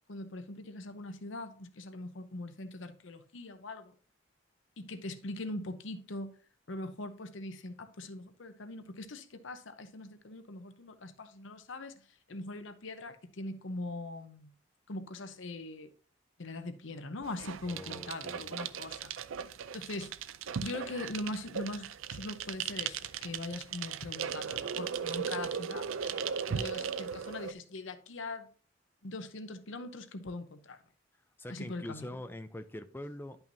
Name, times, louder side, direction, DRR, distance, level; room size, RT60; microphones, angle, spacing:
voice 1, 0.1-3.9 4.8-6.3 6.7-11.9 12.3-14.5 14.9-15.9 16.4-19.1 19.7-20.1 20.6-28.5 29.0-30.8 31.5-32.1, left 2 dB, 70° left, 0.8 m, -41 dB
sound 1, 17.2-27.5, right 7 dB, 85° right, 0.4 m, -37 dB
voice 2, 17.6-18.5 31.4-33.4, left 1 dB, 10° left, 0.4 m, -43 dB
10.5 x 5.7 x 2.7 m
head